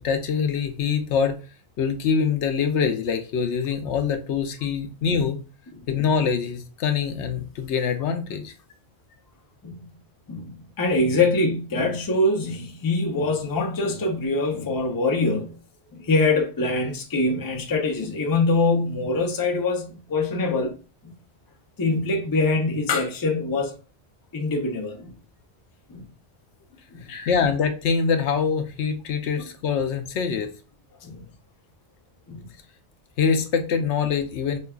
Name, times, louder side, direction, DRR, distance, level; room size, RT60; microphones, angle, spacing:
voice 1, 0.0-1.4 1.8-5.4 5.9-8.5 27.3-30.5 33.2-34.6, left 6 dB, 85° left, 0.9 m, -24 dB
voice 2, 10.3-15.5 15.9-20.7 21.0-21.1 21.8-23.7 24.3-25.1 25.9-26.0 26.9-27.4 31.0-31.2 32.3-32.5, left 2 dB, 25° left, 0.5 m, -24 dB
5.3 x 2.2 x 2.3 m
omnidirectional pair, 1.1 m